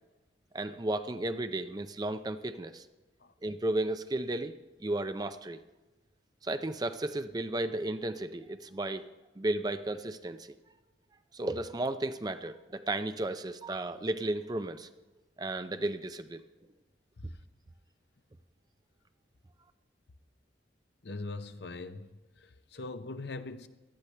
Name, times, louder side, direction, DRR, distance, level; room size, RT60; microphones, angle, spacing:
voice 1, 0.5-2.9 3.4-4.5 4.8-5.6 6.4-9.1 9.4-10.5 11.3-14.9 15.4-16.4, right 2 dB, 20° right, 10 dB, 0.5 m, -34 dB
voice 2, 21.0-22.1 22.4-23.7, left 3 dB, 65° left, 10 dB, 0.7 m, -41 dB
18.0 x 12.0 x 3.3 m, 1.1 s
head